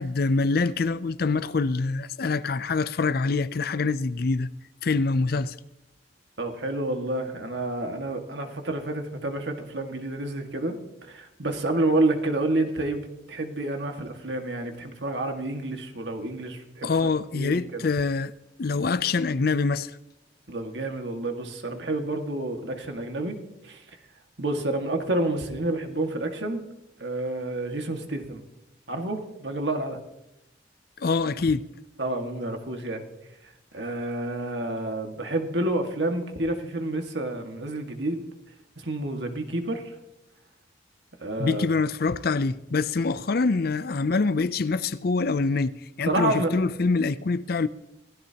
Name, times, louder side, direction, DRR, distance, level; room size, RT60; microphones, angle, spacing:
voice 1, 0.0-4.5 4.8-5.5 16.8-18.3 18.6-19.9 31.0-31.6 41.4-45.7 46.0-47.7, left 4 dB, 55° left, 0.5 m, -25 dB
voice 2, 6.4-17.8 20.5-23.4 23.6-23.8 24.4-26.7 27.0-28.4 28.9-30.0 32.0-33.1 33.7-38.2 38.8-39.9 41.2-41.7 46.0-46.6, right 2 dB, 70° right, 1.9 m, -29 dB
27.0 x 16.0 x 2.9 m
head